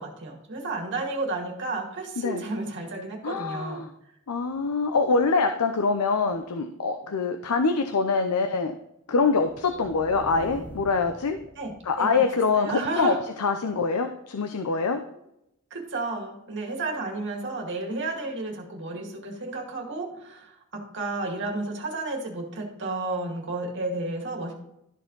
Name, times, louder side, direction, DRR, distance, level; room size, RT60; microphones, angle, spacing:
voice 1, 0.0-3.9 11.6-12.1 12.5-13.2 15.7-24.5, right 2 dB, 55° right, 1 dB, 2.0 m, -32 dB
voice 2, 3.2-3.9 4.3-8.7 9.1-11.4 11.8-15.0, left 4 dB, 85° left, 7 dB, 0.6 m, -24 dB
sound 1, 9.3-12.2, equal, 5° right, 1.0 m, -43 dB
13.0 x 4.4 x 3.9 m, 0.82 s
head